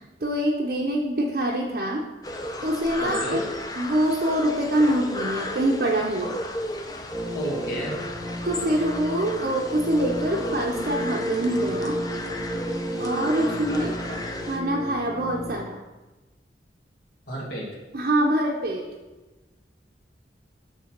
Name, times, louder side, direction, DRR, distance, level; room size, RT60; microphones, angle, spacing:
voice 1, 0.2-2.1 2.6-3.4 3.8-6.4 8.4-12.0 13.0-13.9 14.5-15.8 17.9-18.9, right 1 dB, 50° right, -2 dB, 0.6 m, -25 dB
sound 1, 2.2-14.6, left 1 dB, 20° left, 0.4 m, -34 dB
voice 2, 3.0-3.5 7.3-8.0 13.2-14.2 17.3-17.7, equal, 70° left, -4 dB, 1.7 m, -33 dB
sound 2, 7.1-15.5, equal, 15° right, 0.8 m, -32 dB
6.4 x 3.4 x 5.8 m, 1.1 s
head